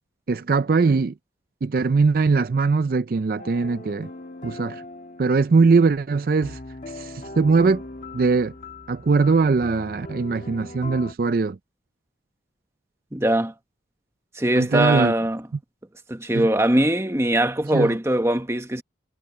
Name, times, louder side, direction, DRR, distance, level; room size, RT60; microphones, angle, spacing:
voice 1, 0.3-1.1 1.6-4.1 4.4-4.8 5.2-6.6 6.9-7.8 8.1-8.5 8.9-11.6 14.6-15.1 16.3-16.5 17.7-17.9, right 4 dB, 50° right, 0.4 m, -21 dB
sound 1, 3.4-11.1, left 2 dB, 45° left, 1.5 m, -40 dB
voice 2, 13.1-13.5 14.3-15.4 16.1-18.8, right 1 dB, 15° right, 1.1 m, -21 dB
head